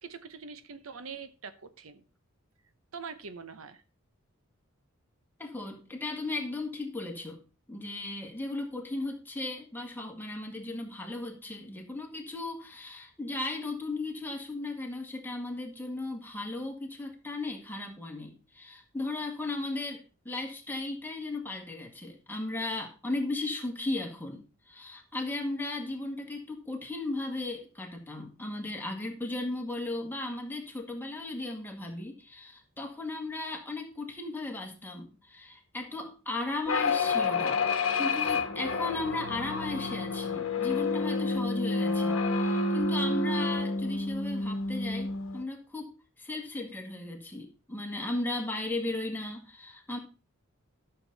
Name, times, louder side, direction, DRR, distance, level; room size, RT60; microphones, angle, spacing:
voice 1, 0.0-2.0 2.9-3.8, right 5 dB, 70° right, 11 dB, 0.8 m, -43 dB
voice 2, 5.4-7.4 7.7-37.6 38.0-45.9 46.2-50.0, left 2 dB, 10° left, 1 dB, 1.9 m, -36 dB
sound 1, 36.7-45.4, left 3 dB, 65° left, 1.2 m, -29 dB
12.5 x 6.8 x 4.0 m, 0.33 s
head